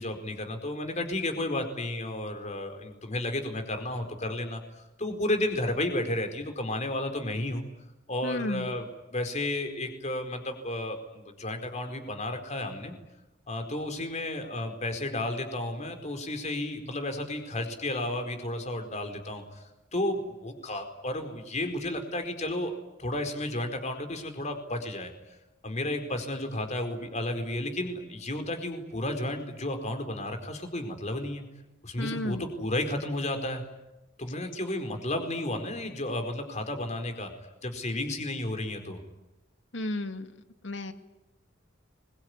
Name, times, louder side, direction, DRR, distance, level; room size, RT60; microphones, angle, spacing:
voice 1, 0.0-7.6 8.1-12.9 13.5-25.1 25.6-31.4 31.8-33.6 34.2-37.3 37.6-39.0, left 1 dB, 40° left, 6 dB, 4.5 m, -32 dB
voice 2, 8.2-8.7 32.0-32.5 39.7-40.3 40.6-40.9, left 1 dB, 70° left, 8 dB, 2.2 m, -33 dB
25.0 x 22.5 x 9.7 m, 0.96 s
head